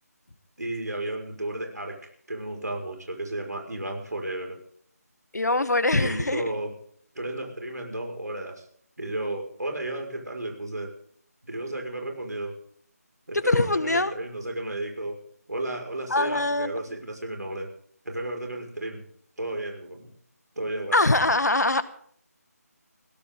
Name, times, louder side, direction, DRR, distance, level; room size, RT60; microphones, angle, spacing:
voice 1, 0.6-4.6 6.0-6.7 7.2-8.6 9.0-10.9 11.4-12.6 13.3-15.2 15.5-17.7 18.0-19.0 19.4-20.1 20.6-21.0, right 1 dB, 85° right, 2 dB, 5.6 m, -33 dB
voice 2, 5.3-6.4 13.3-14.1 16.1-16.7 20.9-21.8, left 2 dB, 80° left, 11 dB, 1.8 m, -23 dB
20.0 x 16.5 x 3.9 m, 0.62 s
figure-of-eight pair, 165°, 9 cm